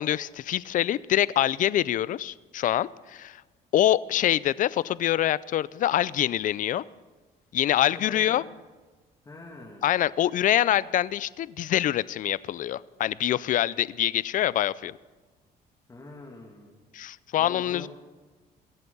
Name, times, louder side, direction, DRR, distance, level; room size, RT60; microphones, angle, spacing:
voice 1, 0.0-3.4 3.7-6.8 7.5-8.4 9.8-15.0 16.9-17.9, left 12 dB, 50° left, 20 dB, 0.5 m, -25 dB
voice 2, 7.9-8.4 9.2-9.8 15.9-16.8 17.4-17.9, left 2 dB, 20° left, -1 dB, 2.2 m, -44 dB
22.0 x 8.2 x 5.5 m, 1.3 s
cardioid pair, 110°, 17 cm